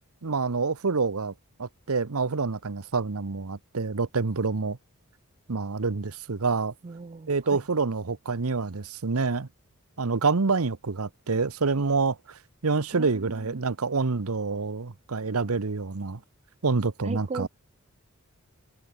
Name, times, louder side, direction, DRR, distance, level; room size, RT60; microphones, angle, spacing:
voice 1, 0.2-1.3 1.6-4.8 5.5-6.7 7.3-9.5 10.0-16.2 16.6-17.5, right 4 dB, 90° right, 0.9 m, -27 dB
voice 2, 6.8-7.3 12.9-13.6 17.0-17.5, right 3 dB, 30° right, 0.4 m, -36 dB
head